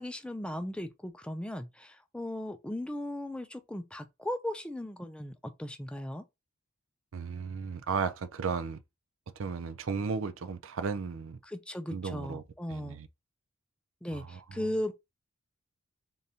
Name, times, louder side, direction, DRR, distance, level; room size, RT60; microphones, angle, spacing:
voice 1, 0.0-6.2 11.4-13.0 14.0-14.9, left 1 dB, 5° left, 0.4 m, -37 dB
voice 2, 7.1-8.8 9.4-11.4 11.9-12.4 12.7-13.1 14.1-14.2, right 5 dB, 65° right, 0.5 m, -34 dB
3.7 x 3.4 x 2.8 m
head